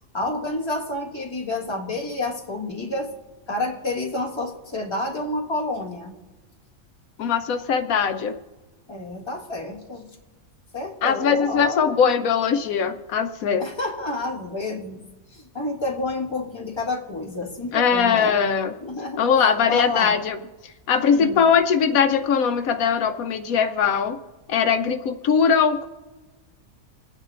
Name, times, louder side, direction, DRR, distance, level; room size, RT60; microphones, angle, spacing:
voice 1, 0.1-3.1 3.5-6.2 8.9-10.1 10.7-12.0 13.6-15.0 15.3-18.3 18.8-20.2 21.1-21.4, left 2 dB, 20° left, -2 dB, 1.6 m, -29 dB
voice 2, 7.2-8.3 11.0-13.6 17.7-18.7 19.2-20.4 20.9-24.2 24.5-25.9, left 6 dB, 80° left, 7 dB, 1.1 m, -20 dB
28.5 x 9.5 x 2.5 m, 1.2 s
omnidirectional pair, 1.5 m